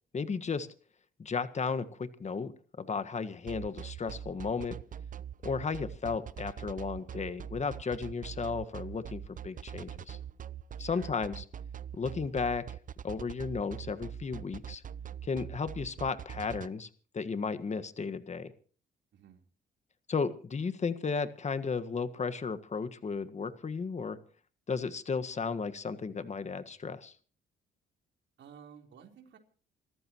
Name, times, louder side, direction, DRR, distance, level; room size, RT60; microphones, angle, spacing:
voice 1, 0.1-0.7 1.2-2.5 2.8-4.8 5.4-10.2 10.8-11.4 11.9-12.6 13.0-14.8 15.2-16.9 17.1-18.5 20.1-24.2 24.7-27.1, left 5 dB, 35° left, 11 dB, 1.6 m, -34 dB
sound 1, 3.5-16.7, right 9 dB, 40° right, 0.6 m, -42 dB
voice 2, 10.8-11.2 19.1-19.5 28.4-29.4, right 7 dB, 70° right, 3 dB, 4.0 m, -54 dB
28.5 x 14.5 x 3.1 m, 0.41 s
cardioid pair, 90°, 20 cm